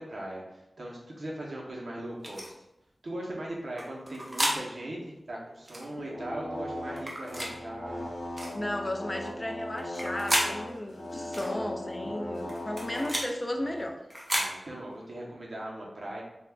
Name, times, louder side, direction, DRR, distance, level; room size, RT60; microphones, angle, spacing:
voice 1, 0.0-2.5 3.0-8.0 14.3-16.2, right 1 dB, 70° right, -3 dB, 0.7 m, -39 dB
sound 1, 2.2-2.5 3.8-4.6 5.7-5.9 7.0-7.5 8.4-8.6 9.8-10.5 11.3-11.5 12.5-13.3 14.1-14.5, equal, 25° right, 0.6 m, -31 dB
sound 2, 5.7-13.9, left 1 dB, 90° left, 0.6 m, -38 dB
voice 2, 8.5-14.0, left 1 dB, 25° left, 3 dB, 0.3 m, -35 dB
3.4 x 2.3 x 2.2 m, 0.91 s
wide cardioid pair, 95°, 0 cm